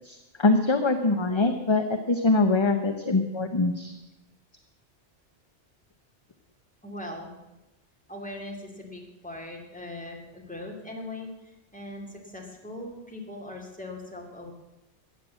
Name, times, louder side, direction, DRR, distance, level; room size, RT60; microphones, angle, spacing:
voice 1, 0.0-3.9, left 3 dB, 30° left, 6 dB, 0.8 m, -23 dB
voice 2, 6.8-7.3 8.1-14.5, left 1 dB, 5° left, 0 dB, 2.3 m, -40 dB
14.0 x 9.3 x 7.5 m, 1.0 s
omnidirectional pair, 1.2 m